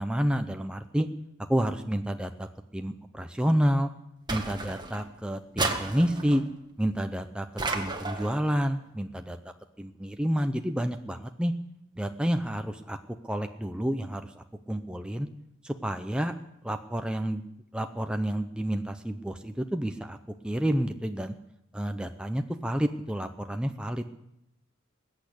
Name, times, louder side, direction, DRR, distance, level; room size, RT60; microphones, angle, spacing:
voice 1, 0.0-1.1 1.5-3.9 4.3-6.4 6.8-7.5 7.7-9.4 9.8-11.5 12.0-15.3 15.6-16.3 16.6-17.4 17.7-20.2 20.4-21.3 21.7-24.1, equal, 5° right, 6 dB, 0.6 m, -29 dB
sound 1, 4.3-5.1 5.6-6.4 7.6-8.4, right 3 dB, 20° right, 1.6 m, -32 dB
20.5 x 8.6 x 8.2 m, 0.83 s
head